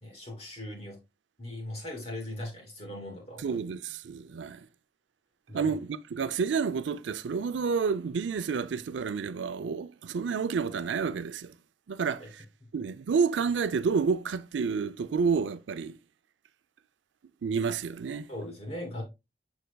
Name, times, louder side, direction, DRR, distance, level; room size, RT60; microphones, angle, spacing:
voice 1, 0.0-1.0 1.4-3.6 5.5-5.7 12.2-12.3 18.3-19.0, left 1 dB, 35° left, 2.8 m, -39 dB
voice 2, 3.4-4.6 5.5-11.5 11.9-12.2 12.7-16.0 17.4-18.3, right 5 dB, 90° right, 0.4 m, -29 dB
6.8 x 6.3 x 2.2 m
head